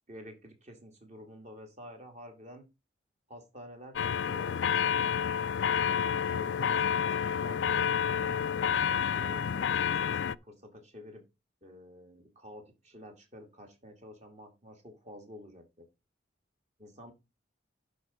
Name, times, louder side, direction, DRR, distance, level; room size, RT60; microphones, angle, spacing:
voice 1, 0.1-2.7 3.3-5.1 5.5-8.5 9.1-11.2 11.6-15.9 16.8-17.1, equal, 40° right, 4 dB, 2.3 m, -50 dB
sound 1, 4.0-10.4, left 7 dB, 70° left, 0.4 m, -29 dB
11.5 x 4.0 x 5.0 m, 0.25 s
head